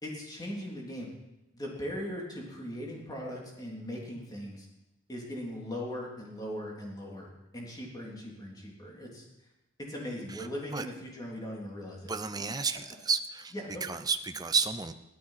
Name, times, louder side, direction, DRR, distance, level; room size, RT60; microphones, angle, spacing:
voice 1, 0.0-1.1 1.5-4.7 5.1-9.2 9.8-12.1 13.5-14.0, equal, 20° left, -2 dB, 3.2 m, -39 dB
voice 2, 12.1-13.5 13.8-14.9, right 5 dB, 20° right, 9 dB, 0.7 m, -31 dB
16.0 x 13.0 x 5.8 m, 0.97 s
head